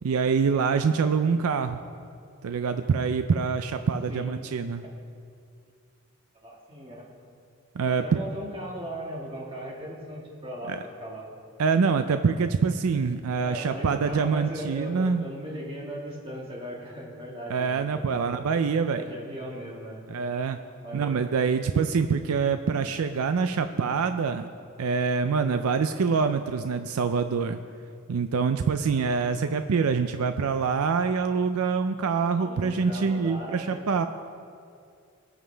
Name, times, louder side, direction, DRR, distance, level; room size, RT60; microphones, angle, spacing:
voice 1, 0.0-1.8 2.4-4.8 7.7-8.2 10.7-10.8 11.6-15.2 17.5-19.0 20.1-20.6 20.9-24.5 24.8-27.6 28.1-34.0, right 5 dB, 85° right, 9 dB, 0.4 m, -25 dB
voice 2, 6.4-7.1 7.8-11.3 13.4-18.5 19.0-20.0 20.8-21.2 32.4-34.1, equal, 25° right, -3 dB, 1.7 m, -38 dB
20.0 x 7.4 x 3.4 m, 2.4 s
head